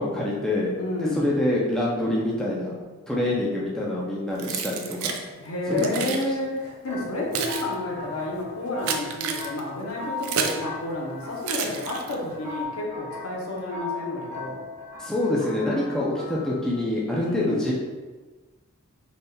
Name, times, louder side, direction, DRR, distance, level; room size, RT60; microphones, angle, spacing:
voice 1, 0.0-0.7 1.0-2.7 3.1-5.2 5.7-6.1 15.0-17.7, left 1 dB, 5° left, -5 dB, 0.4 m, -26 dB
voice 2, 0.8-1.3 5.4-14.6 17.1-17.7, left 2 dB, 85° left, -2 dB, 0.8 m, -30 dB
Keys jangling, 4.4-5.2 5.8-6.3 7.0-10.7 11.4-12.3, right 6 dB, 85° right, 0.4 m, -30 dB
sound 1, 6.9-16.8, left 3 dB, 35° right, 1.1 m, -38 dB
4.0 x 3.4 x 2.2 m, 1.3 s
head